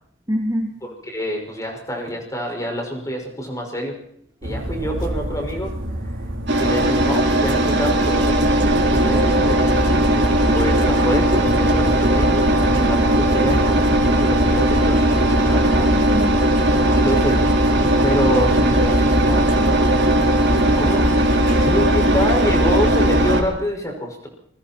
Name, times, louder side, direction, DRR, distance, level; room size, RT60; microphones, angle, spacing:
voice 1, 0.3-0.8 15.7-16.5 21.5-21.8 22.2-22.3, equal, 20° right, 0 dB, 2.9 m, -26 dB
voice 2, 1.1-4.0 4.4-5.7 6.6-9.7 10.5-13.6 13.9-15.9 16.9-17.4 18.0-19.5 20.6-21.1 21.6-24.3, equal, 15° left, 2 dB, 5.7 m, -26 dB
sound 1, 4.4-23.4, equal, 85° right, 3.8 m, -28 dB
Engine, 6.5-23.4, right 1 dB, 55° right, 4.2 m, -18 dB
29.0 x 22.5 x 4.5 m, 0.69 s
head